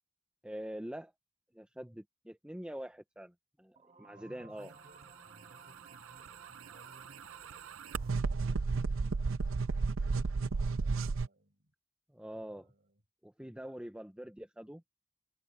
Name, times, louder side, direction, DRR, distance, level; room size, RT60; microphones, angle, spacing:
voice 1, 0.4-1.1 1.5-4.7 12.1-12.7 13.2-14.8, equal, 5° right, 0.7 m, -45 dB
sound 1, 3.8-8.3, right 4 dB, 35° right, 2.2 m, -59 dB
voice 2, 4.1-7.3 8.0-9.1 10.8-11.7 12.4-13.0, right 1 dB, 50° right, 6.7 m, -61 dB
sound 2, 6.1-11.3, right 4 dB, 75° right, 0.6 m, -33 dB
head